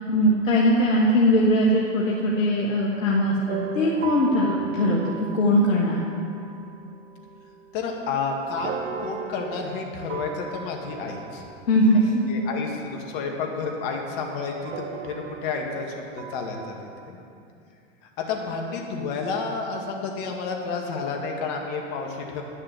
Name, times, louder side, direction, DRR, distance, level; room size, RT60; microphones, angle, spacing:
voice 1, 0.1-5.0 5.3-6.0 11.7-12.1, equal, 85° left, -3 dB, 1.5 m, -20 dB
sound 1, 3.5-13.5 14.6-17.1, right 7 dB, 70° right, 1.1 m, -38 dB
voice 2, 7.7-11.4 11.9-12.0 12.3-16.7 17.1-17.2 18.2-22.4, left 4 dB, 50° left, 1 dB, 2.0 m, -30 dB
10.5 x 6.6 x 7.7 m, 2.6 s
hypercardioid pair, 120°, 38 cm